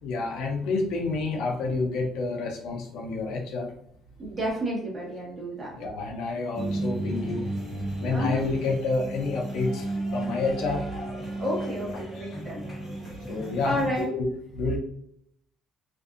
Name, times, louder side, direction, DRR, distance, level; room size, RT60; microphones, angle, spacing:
voice 1, 0.0-3.7 5.7-7.5 8.0-10.9 12.2-12.3 13.3-13.7 14.0-14.3 14.5-14.8, left 3 dB, 75° left, 1 dB, 0.6 m, -29 dB
voice 2, 4.2-5.7 8.1-8.4 11.4-12.6 13.6-14.1, equal, 15° right, -6 dB, 1.2 m, -30 dB
sound 1, 6.5-14.1, right 1 dB, 5° left, 1.1 m, -33 dB
2.6 x 2.4 x 2.4 m, 0.71 s
cardioid pair, 150°, 0 cm